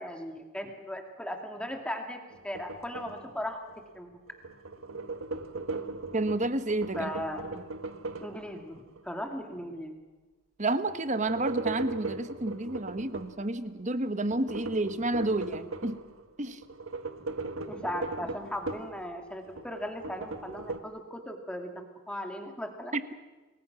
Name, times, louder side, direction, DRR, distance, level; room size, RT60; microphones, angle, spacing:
voice 1, 0.0-3.6 4.0-4.2 6.9-7.4 8.2-10.0 17.7-21.7 22.1-22.9, equal, 5° left, 4 dB, 2.6 m, -37 dB
sound 1, 2.3-4.0 4.3-9.0 10.9-13.4 14.3-16.2 16.6-19.0 19.4-20.8, right 3 dB, 75° right, 1.5 m, -38 dB
voice 2, 6.1-7.1 10.6-16.0 16.4-16.6, right 2 dB, 35° right, 11 dB, 1.2 m, -30 dB
29.0 x 20.5 x 6.2 m, 1.3 s
head